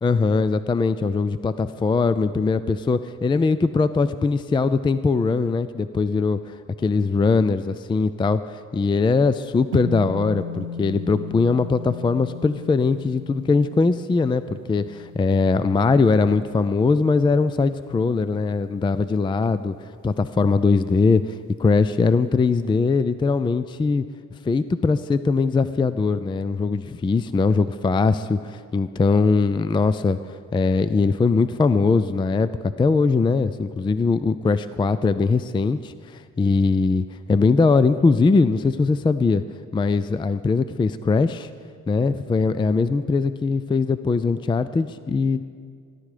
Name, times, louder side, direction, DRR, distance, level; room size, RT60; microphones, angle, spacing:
voice 1, 0.0-19.7 20.0-24.0 24.4-30.2 30.5-39.4 39.7-41.5 41.9-45.4, left 4 dB, 15° left, 13 dB, 0.4 m, -21 dB
sound 1, 9.7-18.2, left 3 dB, 75° right, 0.8 m, -36 dB
17.5 x 11.5 x 4.9 m, 2.1 s
cardioid pair, 90°, 30 cm